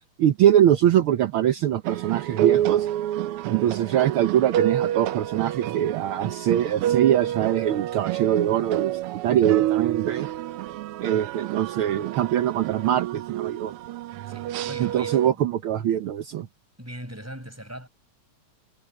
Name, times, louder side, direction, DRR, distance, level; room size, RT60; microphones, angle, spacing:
voice 1, 0.2-2.9 3.5-10.3 11.0-13.7 14.8-16.5, right 11 dB, 65° right, 1.4 m, -23 dB
sound 1, 1.8-15.3, right 12 dB, 85° right, 1.2 m, -28 dB
voice 2, 14.2-15.5 16.8-17.9, equal, 5° right, 7.3 m, -40 dB
omnidirectional pair, 3.3 m